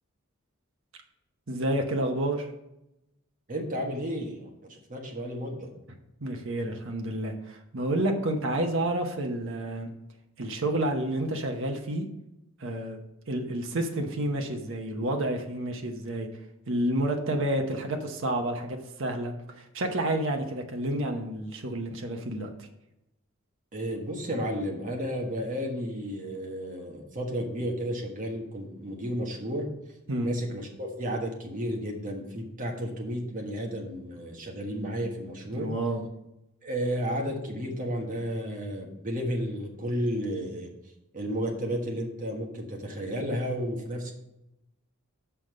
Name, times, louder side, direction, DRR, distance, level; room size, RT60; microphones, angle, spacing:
voice 1, 1.5-2.5 6.2-9.9 10.4-12.1 12.6-13.0 13.3-16.3 16.7-22.7 30.1-30.3 35.5-36.0, right 1 dB, 65° right, 4 dB, 0.9 m, -30 dB
voice 2, 3.5-5.7 23.7-29.7 30.2-35.7 36.6-40.7 41.1-44.1, equal, 40° right, 1 dB, 1.4 m, -32 dB
6.5 x 5.7 x 5.4 m, 0.88 s
head